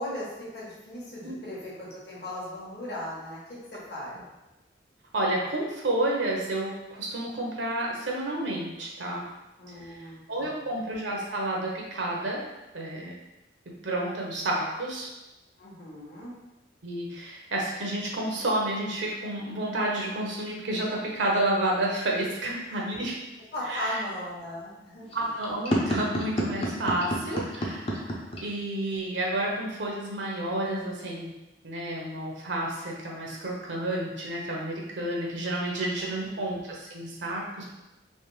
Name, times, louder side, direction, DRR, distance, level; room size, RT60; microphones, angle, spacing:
voice 1, 0.0-4.2 9.6-10.7 15.6-16.3 22.7-22.8 23.5-25.2 36.0-36.4, left 1 dB, 55° left, -7 dB, 1.0 m, -38 dB
voice 2, 5.1-9.2 9.8-12.4 12.7-13.1 13.8-15.1 16.8-23.2 23.7-24.0 25.1-31.3 31.6-37.6, right 1 dB, 70° right, -2 dB, 0.7 m, -30 dB
sound 1, 25.0-28.4, equal, 30° left, 0.5 m, -29 dB
3.3 x 3.0 x 3.2 m, 1.0 s
head